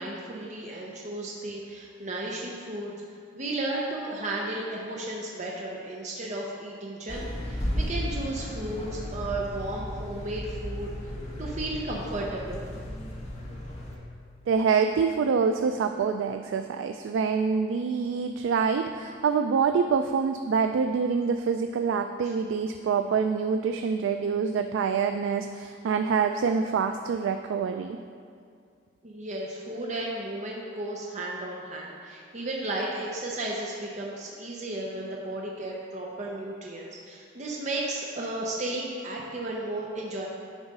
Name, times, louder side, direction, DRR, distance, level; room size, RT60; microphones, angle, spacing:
voice 1, 0.0-11.1 11.4-12.6 22.2-22.3 29.0-40.3, right 2 dB, 40° right, -3 dB, 0.7 m, -34 dB
sound 1, 7.1-14.0, equal, 35° left, 1.3 m, -34 dB
voice 2, 14.5-28.0, right 5 dB, 75° right, 7 dB, 0.3 m, -26 dB
9.7 x 4.0 x 5.3 m, 2.3 s
head